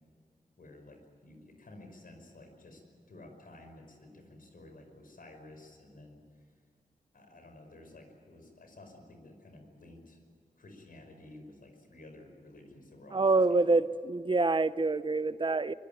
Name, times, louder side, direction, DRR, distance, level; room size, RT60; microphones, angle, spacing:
voice 1, 0.6-2.8 3.1-6.2 7.1-10.2 10.6-13.8, left 2 dB, 75° left, 5 dB, 5.5 m, -53 dB
voice 2, 13.1-15.7, right 3 dB, 35° right, 15 dB, 0.6 m, -26 dB
25.0 x 21.5 x 9.3 m, 2.1 s
wide cardioid pair, 100°, 15 cm